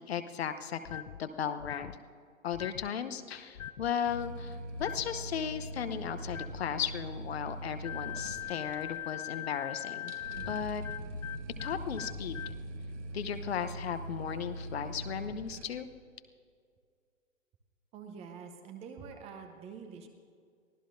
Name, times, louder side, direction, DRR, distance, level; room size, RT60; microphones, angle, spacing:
voice 1, 0.0-2.0 2.4-10.1 10.5-10.8 11.6-12.5 13.1-15.9, left 8 dB, 50° left, 9 dB, 1.0 m, -36 dB
sound 1, 0.8-1.2 1.6-2.0 2.5-2.9 3.5-3.9 4.8-5.1 6.3-6.6 7.8-12.6, left 12 dB, 75° left, 0.5 m, -41 dB
sound 2, 4.0-15.7, right 1 dB, 60° right, 1.4 m, -42 dB
voice 2, 17.9-20.1, right 6 dB, 15° right, 6 dB, 0.8 m, -46 dB
23.5 x 16.0 x 2.6 m, 2.2 s
figure-of-eight pair, 125°, 40 cm